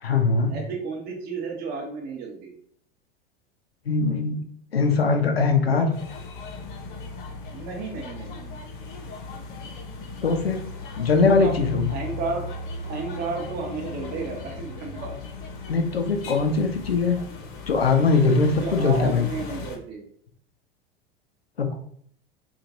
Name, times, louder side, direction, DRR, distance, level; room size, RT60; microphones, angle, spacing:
voice 1, 0.0-0.6 3.9-4.4 4.7-5.9 10.2-10.6 11.0-11.9 15.7-17.2 17.7-19.3 21.6-21.7, left 4 dB, 85° left, 5 dB, 0.6 m, -21 dB
voice 2, 0.5-2.5 7.5-8.6 11.2-11.6 11.9-12.6 12.8-15.1 18.6-20.1 21.7-21.8, right 4 dB, 30° right, 0 dB, 0.9 m, -32 dB
sound 1, 5.9-19.8, left 4 dB, 55° left, 0.8 m, -37 dB
3.0 x 2.4 x 3.8 m, 0.62 s
figure-of-eight pair, 80°, 30 cm